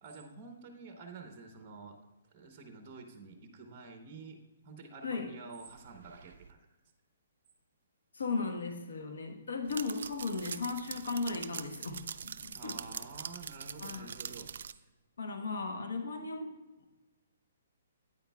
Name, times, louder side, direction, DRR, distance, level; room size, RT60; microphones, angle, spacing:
voice 1, 0.0-2.0 2.3-4.4 4.6-6.6 12.5-14.5, right 4 dB, 30° right, 5 dB, 0.9 m, -49 dB
sound 1, 5.7-6.5 9.6-14.7, right 7 dB, 70° right, 0.3 m, -44 dB
voice 2, 8.1-12.8 13.8-14.1 15.2-16.5, left 4 dB, 85° left, 5 dB, 1.2 m, -36 dB
9.1 x 8.4 x 2.3 m, 1.1 s
hypercardioid pair, 150°, 0 cm